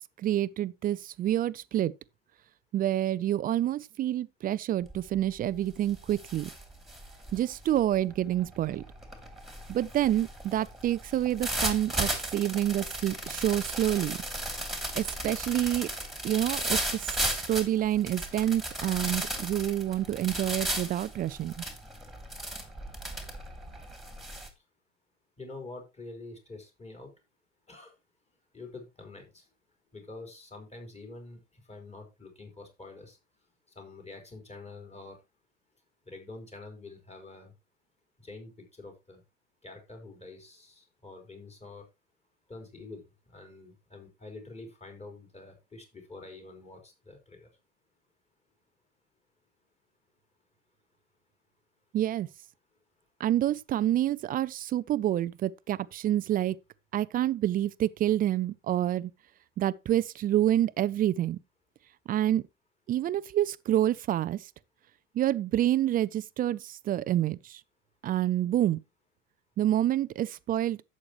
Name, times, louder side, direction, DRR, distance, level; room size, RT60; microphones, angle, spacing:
voice 1, 0.2-1.9 2.7-6.5 7.3-8.8 9.7-14.2 14.9-15.9 16.2-21.5 51.9-52.3 53.2-56.6 56.9-59.1 59.6-61.4 62.1-62.4 62.9-64.5 65.1-67.6 68.0-68.8 69.6-70.8, right 12 dB, 25° right, 0.4 m, -28 dB
sound 1, 4.8-5.2 5.6-24.5, right 1 dB, ahead, 2.8 m, -35 dB
voice 2, 25.4-27.1 27.7-27.9 28.5-29.5 29.9-33.2 33.7-35.2 36.0-37.5 38.2-39.2 39.6-41.8 42.5-43.0 43.3-47.5, left 3 dB, 15° left, 4.5 m, -46 dB
11.5 x 8.3 x 3.1 m
figure-of-eight pair, 70°, 37 cm